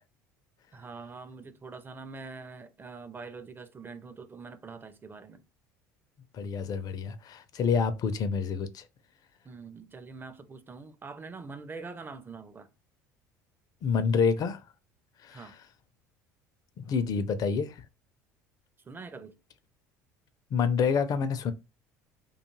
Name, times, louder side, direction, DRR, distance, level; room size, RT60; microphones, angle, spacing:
voice 1, 0.7-5.4 9.4-12.7 15.3-15.6 18.9-19.4, right 4 dB, 25° right, 0.5 m, -44 dB
voice 2, 6.3-8.9 13.8-14.6 15.2-15.5 16.8-17.8 20.5-21.5, left 6 dB, 45° left, 0.5 m, -28 dB
2.4 x 2.3 x 2.9 m
hypercardioid pair, 65°, 9 cm